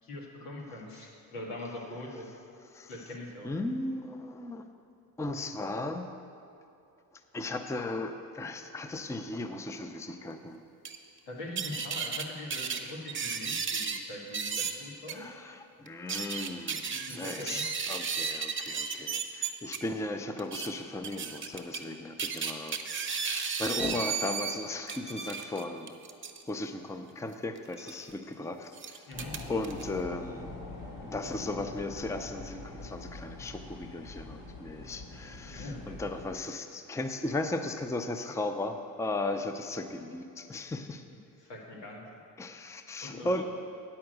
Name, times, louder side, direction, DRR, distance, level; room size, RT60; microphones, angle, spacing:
voice 1, 0.0-2.3 2.9-3.5 11.2-15.2 16.9-17.7 29.1-29.3 35.5-36.0 41.4-42.1 43.0-43.4, left 1 dB, 90° left, -2 dB, 1.8 m, -42 dB
voice 2, 3.4-4.7 5.2-6.1 7.3-10.6 15.1-16.8 17.1-22.8 23.0-25.9 26.5-29.0 29.5-30.5 31.1-41.0 42.4-43.4, left 2 dB, 5° left, 7 dB, 0.5 m, -36 dB
sound 1, 10.8-11.0 11.6-12.2 12.5-14.0 14.3-14.7 15.1-15.2 15.9-19.8 20.4-20.7 21.0-21.8 22.2-24.6 24.9-26.4 27.7-27.9 28.7-29.8, right 6 dB, 25° right, 0.8 m, -34 dB
sound 2, 29.1-36.3, left 2 dB, 50° left, 2.0 m, -44 dB
8.5 x 5.8 x 7.9 m, 2.6 s
supercardioid pair, 70°, 46 cm